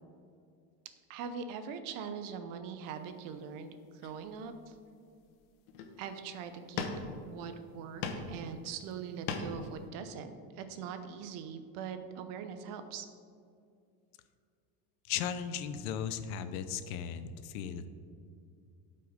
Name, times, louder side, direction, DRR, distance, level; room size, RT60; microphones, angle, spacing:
voice 1, 1.1-4.7 6.0-6.8 7.2-13.1, right 6 dB, 50° right, 9 dB, 0.8 m, -42 dB
sound 1, 3.3-3.5 4.0-4.7 5.2-5.3 5.7-6.1 6.8-7.4 7.7-8.4 8.7-9.7, left 5 dB, 70° left, 1.2 m, -39 dB
voice 2, 15.1-17.9, left 8 dB, 85° left, 11 dB, 0.8 m, -36 dB
12.0 x 5.6 x 5.2 m, 2.4 s
cardioid pair, 175°, 42 cm